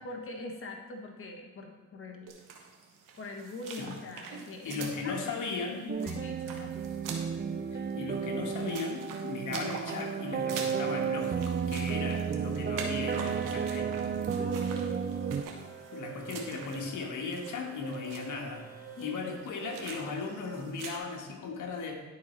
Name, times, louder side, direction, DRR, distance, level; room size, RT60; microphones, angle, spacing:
voice 1, 0.0-2.3 3.2-5.2 5.7-6.8 14.4-15.1 19.0-19.2, left 2 dB, 45° left, 2 dB, 1.4 m, -42 dB
sound 1, 2.3-21.0, right 5 dB, 90° right, 1.1 m, -46 dB
voice 2, 4.6-5.9 7.7-14.0 15.9-18.7 19.0-22.0, left 4 dB, 75° left, 2 dB, 1.4 m, -37 dB
sound 2, 5.9-15.4, right 6 dB, 35° right, 0.5 m, -33 dB
sound 3, 14.5-20.3, right 8 dB, 65° right, 2.1 m, -46 dB
11.0 x 4.1 x 4.4 m, 1.3 s
cardioid pair, 70°, 31 cm